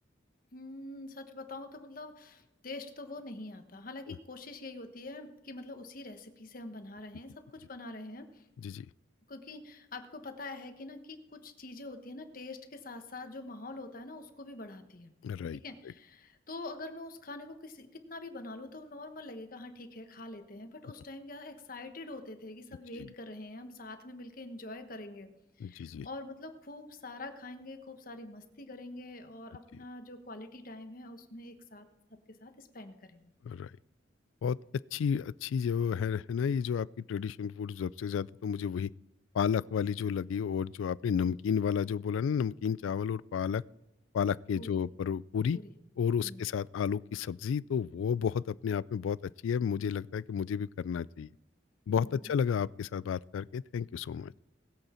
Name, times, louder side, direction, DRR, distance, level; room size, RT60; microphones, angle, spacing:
voice 1, 0.5-8.5 9.3-15.1 15.5-25.3 25.6-31.9 32.4-33.3 44.5-44.7 45.5-45.7 46.2-46.4 52.0-52.3, left 2 dB, 45° left, 1.2 m, -45 dB
voice 2, 15.2-15.6 25.6-26.1 33.5-33.7 34.4-34.6 34.9-38.9 39.3-43.6 44.1-45.6 46.0-49.2 49.4-51.3 51.9-54.3, left 7 dB, 85° left, 0.3 m, -32 dB
20.5 x 8.1 x 4.4 m
head